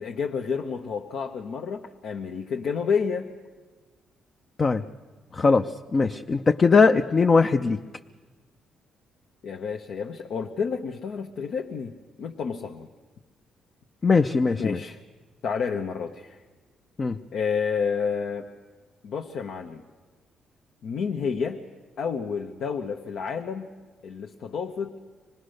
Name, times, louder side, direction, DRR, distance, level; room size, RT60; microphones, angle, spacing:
voice 1, 0.0-3.3 9.4-12.9 14.6-15.0 15.4-16.4 17.3-18.5 19.0-19.8 20.8-21.6 22.0-23.7 24.0-24.9, left 6 dB, 70° left, 2 dB, 1.0 m, -30 dB
voice 2, 5.9-7.8 14.0-14.8 17.0-17.2, left 4 dB, 35° left, 6 dB, 0.6 m, -20 dB
25.5 x 19.0 x 6.5 m, 1.4 s
cardioid pair, 90°, 0 cm